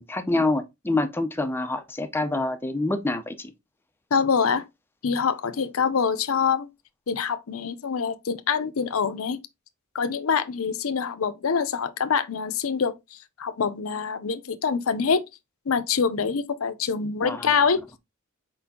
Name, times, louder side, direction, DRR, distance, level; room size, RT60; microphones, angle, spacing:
voice 1, 0.0-3.5 17.2-17.5, left 2 dB, 10° left, 0.5 m, -26 dB
voice 2, 4.1-4.6 5.0-6.7 7.1-9.4 9.9-12.9 13.4-15.2 15.7-18.0, left 6 dB, 70° left, 0.6 m, -25 dB
4.5 x 4.3 x 2.7 m
head